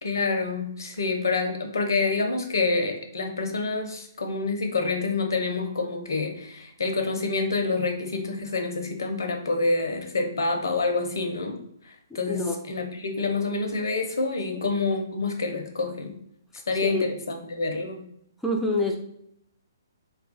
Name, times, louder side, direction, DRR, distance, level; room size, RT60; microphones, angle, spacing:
voice 1, 0.0-11.6 11.8-16.2 16.7-18.0, left 3 dB, 65° left, 4 dB, 0.6 m, -27 dB
voice 2, 12.1-12.6 14.5-14.6 16.8-17.1 18.4-19.0, left 1 dB, 5° left, 0 dB, 0.3 m, -27 dB
2.3 x 2.2 x 3.9 m, 0.72 s
figure-of-eight pair, 130°, 2 cm